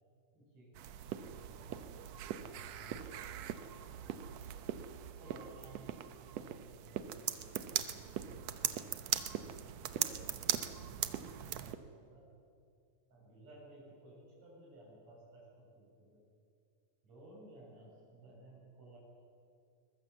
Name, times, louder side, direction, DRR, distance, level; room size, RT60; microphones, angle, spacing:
voice 1, 0.3-4.5 5.2-7.5 7.8-9.2 9.9-12.3 13.1-16.3 17.0-19.0, right 2 dB, 50° right, -4 dB, 8.4 m, -58 dB
sound 1, 0.7-11.8, right 11 dB, 75° right, 1.6 m, -40 dB
22.0 x 21.0 x 7.3 m, 2.5 s
omnidirectional pair, 4.1 m